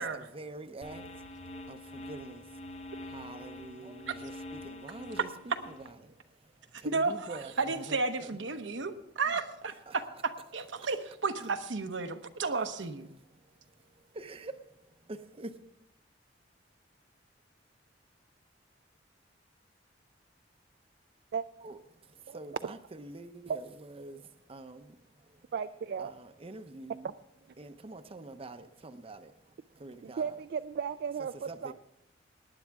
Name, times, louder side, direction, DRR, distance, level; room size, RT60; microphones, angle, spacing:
voice 1, 0.0-8.3 9.3-9.4 9.9-10.1 10.8-10.9 13.3-15.6 21.6-25.5 26.0-27.1 27.6-30.3 31.5-31.7, right 2 dB, 30° right, 9 dB, 0.7 m, -47 dB
sound 1, 0.8-5.9, left 1 dB, 35° left, 0.9 m, -45 dB
voice 2, 6.7-13.1, right 4 dB, 80° right, 8 dB, 0.9 m, -33 dB
voice 3, 25.5-26.1 30.0-31.7, right 6 dB, 60° right, 11 dB, 0.3 m, -35 dB
19.0 x 9.8 x 3.5 m, 0.82 s
head